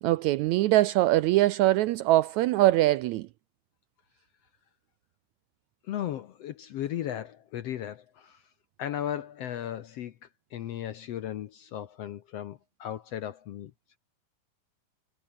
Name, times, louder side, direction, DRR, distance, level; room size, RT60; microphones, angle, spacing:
voice 1, 0.0-3.3, right 16 dB, 85° right, 1.6 m, -22 dB
voice 2, 5.9-8.4 8.8-10.1 10.5-13.7, left 11 dB, 70° left, 1.5 m, -36 dB
omnidirectional pair, 3.9 m